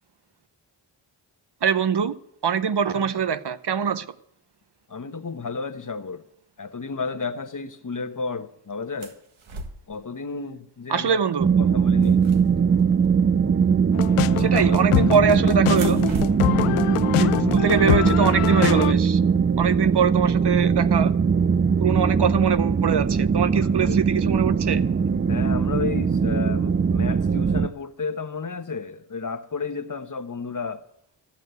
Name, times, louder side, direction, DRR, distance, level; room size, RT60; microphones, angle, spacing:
voice 1, 1.6-2.1 2.4-4.1 10.9-11.5 14.4-16.0 17.2-19.2 19.6-21.1 21.8-24.8, right 7 dB, 55° right, 0.9 m, -23 dB
voice 2, 4.9-6.2 6.6-9.2 9.9-11.2 11.6-12.2 14.4-14.7 23.5-24.0 25.3-30.8, left 4 dB, 40° left, 1.2 m, -32 dB
sound 1, 9.0-10.0 11.1-11.3 11.6-13.1 14.5-15.1 15.6-18.7, right 2 dB, 70° right, 1.8 m, -40 dB
sound 2, 11.4-27.7, right 6 dB, 25° right, 0.5 m, -21 dB
sound 3, 14.0-18.9, left 14 dB, 85° left, 0.6 m, -25 dB
14.5 x 7.3 x 8.1 m
cardioid pair, 45°, 50 cm